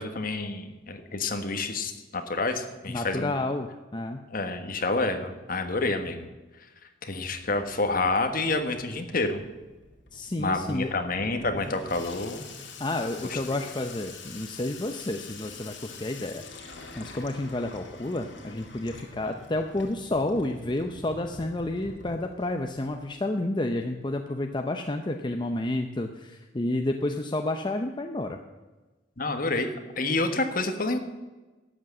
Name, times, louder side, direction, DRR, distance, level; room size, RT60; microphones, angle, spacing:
voice 1, 0.0-3.3 4.3-6.3 7.0-9.4 10.4-12.4 13.3-13.6 29.2-29.7 30.0-31.0, left 3 dB, 50° left, 6 dB, 1.5 m, -28 dB
voice 2, 2.9-4.2 10.1-10.9 12.8-16.4 17.0-28.4, left 2 dB, 25° left, 4 dB, 0.7 m, -30 dB
Water tap faucet / Sink (filling or washing), 7.1-23.1, left 3 dB, 70° left, 2.4 m, -46 dB
12.5 x 8.5 x 7.6 m, 1.2 s
head